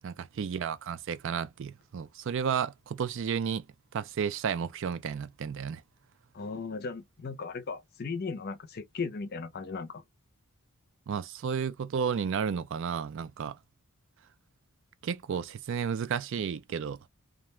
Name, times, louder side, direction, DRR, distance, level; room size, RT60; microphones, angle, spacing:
voice 1, 0.0-3.6 3.9-5.8 11.1-13.6 15.0-17.0, right 7 dB, 60° right, 0.3 m, -32 dB
voice 2, 6.3-10.0, left 4 dB, 45° left, 0.5 m, -37 dB
2.3 x 2.2 x 3.0 m
head